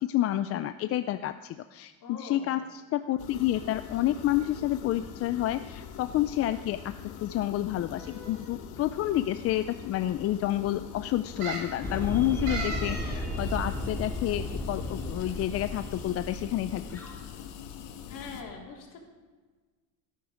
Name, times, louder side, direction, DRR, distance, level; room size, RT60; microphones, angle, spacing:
voice 1, 0.0-6.9 7.2-17.0, left 13 dB, 40° left, 11 dB, 0.4 m, -29 dB
voice 2, 2.0-2.6 18.1-19.0, left 4 dB, 60° left, -1 dB, 3.5 m, -43 dB
sound 1, 3.2-18.4, left 8 dB, 80° left, 1.5 m, -43 dB
sound 2, 8.0-8.5 9.3-9.4 9.7-9.8 11.4-11.8 12.5-13.2 13.5-13.6, right 3 dB, 80° right, 5.3 m, -37 dB
sound 3, 11.8-17.3, left 1 dB, 5° left, 2.1 m, -35 dB
16.5 x 9.3 x 5.0 m, 1.4 s
cardioid pair, 145°, 36 cm